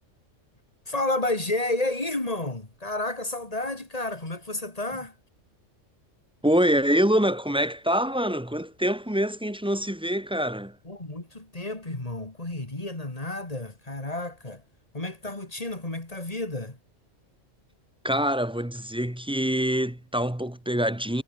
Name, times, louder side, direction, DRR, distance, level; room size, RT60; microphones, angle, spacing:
voice 1, 0.9-5.1 10.8-14.6 14.9-16.8, left 2 dB, 30° left, 3.1 m, -31 dB
voice 2, 6.4-10.8 18.0-21.2, equal, 5° right, 0.9 m, -25 dB
omnidirectional pair, 1.3 m